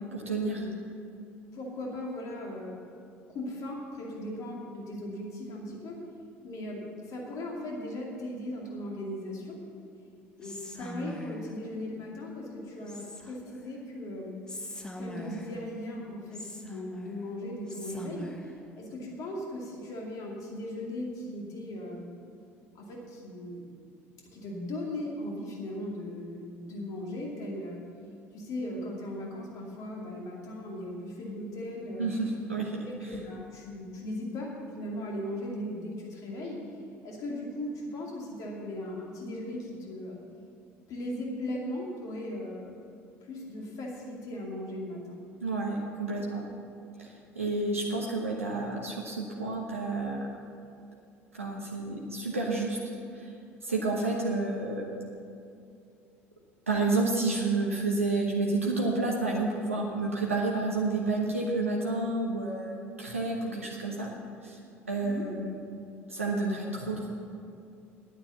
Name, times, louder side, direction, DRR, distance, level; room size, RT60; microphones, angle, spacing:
voice 1, 0.1-0.6 32.0-33.1 45.4-46.4 47.0-50.3 51.3-52.8 53.1-53.3 53.6-54.8 56.7-64.1 64.4-64.6 64.9-65.6 66.1-67.1, right 3 dB, 90° right, -1 dB, 1.0 m, -30 dB
voice 2, 1.5-2.8 3.3-6.0 6.4-9.6 10.4-14.4 15.0-18.3 18.8-22.1 22.7-23.7 24.3-27.8 28.3-32.1 32.8-36.6 37.0-40.2 40.9-42.7 43.2-45.2 65.0-65.3, left 1 dB, 50° left, -2 dB, 2.4 m, -38 dB
Whispering, 10.4-11.5 12.9-13.6 14.5-15.7 16.3-17.3 17.7-18.5, left 1 dB, 10° left, 1.5 m, -41 dB
9.8 x 9.4 x 7.0 m, 2.5 s
figure-of-eight pair, 60°, 7 cm